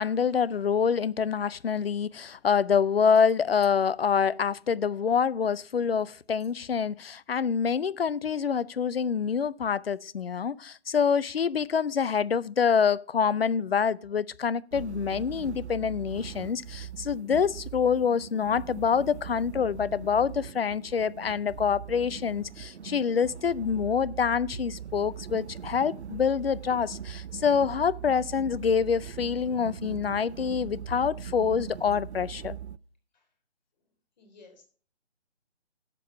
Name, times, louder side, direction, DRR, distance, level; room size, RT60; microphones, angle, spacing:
voice 1, 0.0-32.6, left 6 dB, 55° left, 0.5 m, -26 dB
sound 1, 14.7-32.8, right 9 dB, 70° right, 0.5 m, -41 dB
voice 2, 34.2-34.7, left 3 dB, 40° left, 3.7 m, -54 dB
12.5 x 7.5 x 5.6 m
figure-of-eight pair, 150°, 35 cm